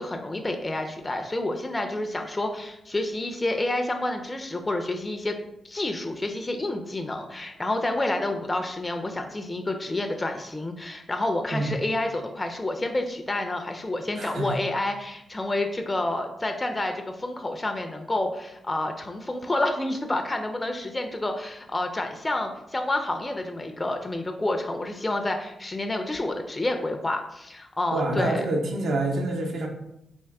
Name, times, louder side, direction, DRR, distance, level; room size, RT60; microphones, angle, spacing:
voice 1, 0.0-5.4 5.6-28.5, left 2 dB, 20° left, 4 dB, 0.4 m, -29 dB
voice 2, 14.2-14.6 27.9-29.7, right 2 dB, 70° right, 2 dB, 0.7 m, -27 dB
3.6 x 2.6 x 3.4 m, 0.83 s
cardioid pair, 85°, 0 cm